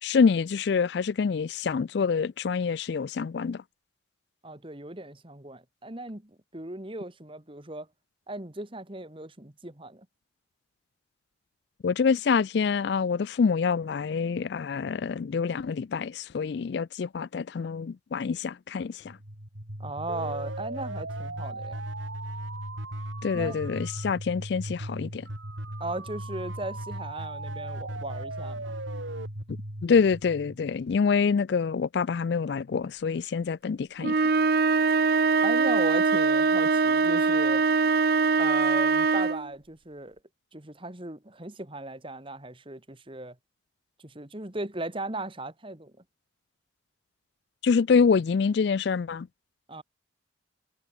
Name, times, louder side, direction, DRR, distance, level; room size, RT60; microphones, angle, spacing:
voice 1, 0.0-3.6 11.8-19.2 23.2-25.3 29.8-34.3 47.6-49.3, left 5 dB, 55° left, 0.4 m, -26 dB
voice 2, 4.4-7.9 8.3-10.1 19.8-21.8 23.3-23.6 25.8-28.7 35.4-37.7 38.4-40.2 40.5-43.4 44.0-45.9 49.7-49.8, right 2 dB, 25° right, 1.8 m, -37 dB
sound 1, 19.1-30.9, right 1 dB, 75° right, 6.2 m, -37 dB
sound 2, 34.0-39.5, right 4 dB, 50° right, 0.6 m, -22 dB
head